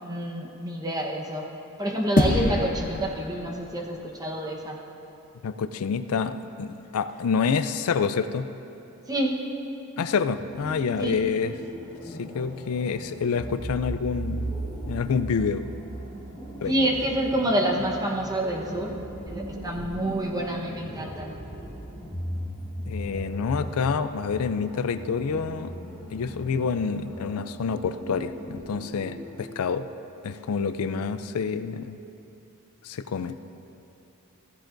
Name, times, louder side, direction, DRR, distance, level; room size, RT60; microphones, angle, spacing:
voice 1, 0.0-1.5 1.8-4.8 9.1-9.4 11.0-11.2 16.7-19.0 19.3-21.3, right 1 dB, 20° right, -1 dB, 1.0 m, -28 dB
sound 1, 2.2-4.8, left 1 dB, 40° left, 0.7 m, -27 dB
voice 2, 5.4-8.5 10.0-11.5 12.2-14.5 14.9-15.7 16.6-16.7 22.9-25.7 26.1-29.9 30.2-32.0 32.8-33.3, left 5 dB, 80° left, 11 dB, 0.4 m, -27 dB
sound 2, 10.4-29.4, equal, 5° left, 1.5 m, -38 dB
15.0 x 15.0 x 2.6 m, 2.9 s
head